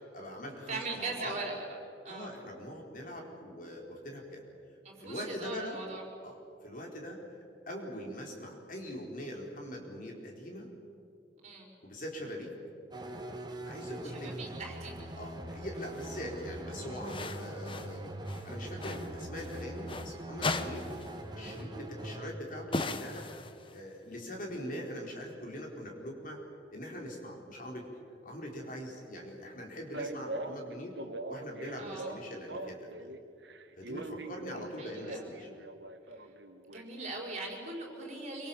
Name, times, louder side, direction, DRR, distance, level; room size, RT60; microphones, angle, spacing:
voice 1, 0.1-1.4 2.1-4.4 5.0-5.8 6.2-6.4 6.6-7.4 7.7-10.7 11.8-12.5 13.7-14.3 15.2-20.9 21.3-26.4 26.7-27.9 28.2-31.0 31.3-32.9 33.8-35.5, equal, 50° left, 0 dB, 4.4 m, -42 dB
voice 2, 0.7-1.6 2.0-2.3 4.8-6.0 11.4-11.7 14.2-14.9 31.8-32.1 34.8-35.4 36.2-36.3 36.7-38.5, right 3 dB, 40° right, 0 dB, 5.5 m, -40 dB
sound 1, 12.9-22.3, right 1 dB, 25° right, 1.9 m, -42 dB
sound 2, 15.8-16.1 17.1-18.0 18.3-20.1 20.4-21.2 21.5-21.6 22.7-23.9, left 3 dB, 30° left, 1.0 m, -38 dB
Male speech man speaking, 29.9-33.2 33.4-36.8, right 2 dB, 80° right, 1.7 m, -42 dB
26.5 x 25.0 x 7.3 m, 2.6 s
head